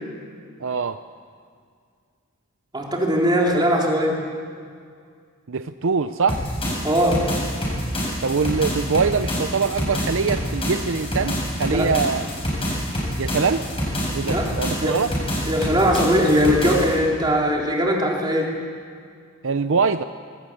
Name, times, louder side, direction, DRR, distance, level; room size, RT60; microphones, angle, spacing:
voice 1, 0.6-1.0 5.5-6.4 8.2-12.3 13.2-13.6 14.1-15.1 19.4-20.0, right 5 dB, 60° right, 10 dB, 0.6 m, -23 dB
voice 2, 2.7-4.2 6.8-7.2 11.7-11.9 14.2-14.5 14.8-14.9 15.5-18.5, equal, 20° right, -1 dB, 3.5 m, -20 dB
sound 1, 6.3-16.9, equal, 25° left, 7.4 m, -27 dB
20.5 x 19.0 x 8.7 m, 2.1 s
head